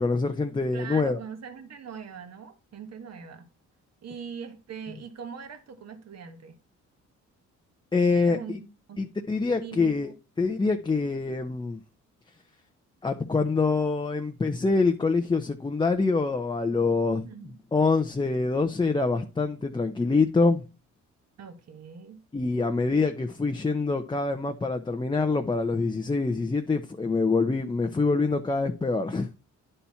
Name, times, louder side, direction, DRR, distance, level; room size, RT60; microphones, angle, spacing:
voice 1, 0.0-1.2 7.9-8.6 9.0-10.1 10.4-11.8 13.0-17.3 17.7-20.6 22.3-29.3, left 3 dB, 15° left, 0.7 m, -25 dB
voice 2, 0.7-3.5 4.0-6.6 8.1-9.0 9.6-10.1 17.2-17.6 21.4-22.2, right 6 dB, 60° right, 1.7 m, -41 dB
9.9 x 4.3 x 5.6 m
cardioid pair, 90°, 30 cm